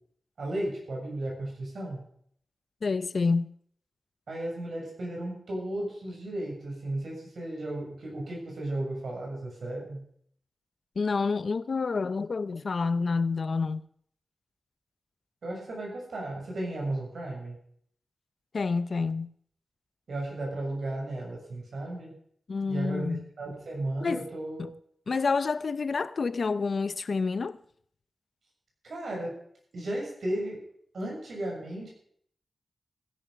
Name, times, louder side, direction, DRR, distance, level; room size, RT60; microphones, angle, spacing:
voice 1, 0.4-2.0 4.3-10.0 15.4-17.6 20.1-22.1 22.7-24.7 28.8-29.4 29.7-30.6 30.9-31.9, right 1 dB, 75° right, 7.0 m, -34 dB
voice 2, 2.8-3.5 11.0-13.8 18.5-19.3 22.5-23.2 24.0-24.3 24.6-24.7 25.1-27.6, left 4 dB, 60° left, 0.6 m, -28 dB
15.5 x 11.0 x 5.1 m
wide cardioid pair, 95°, 0 cm